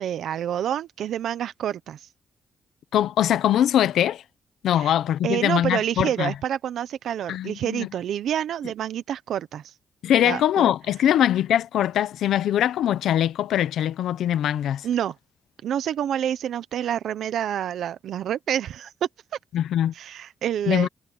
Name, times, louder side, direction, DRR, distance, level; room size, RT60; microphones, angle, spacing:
voice 1, 0.0-2.1 4.7-4.9 5.2-9.7 10.2-10.7 14.8-15.2 15.6-18.9 19.9-20.9, right 10 dB, 75° right, 1.0 m, -28 dB
voice 2, 2.9-4.2 4.6-6.3 7.3-7.9 10.0-14.9 19.5-19.9 20.7-20.9, left 11 dB, 80° left, 0.9 m, -22 dB
cardioid pair, 105°, 0 cm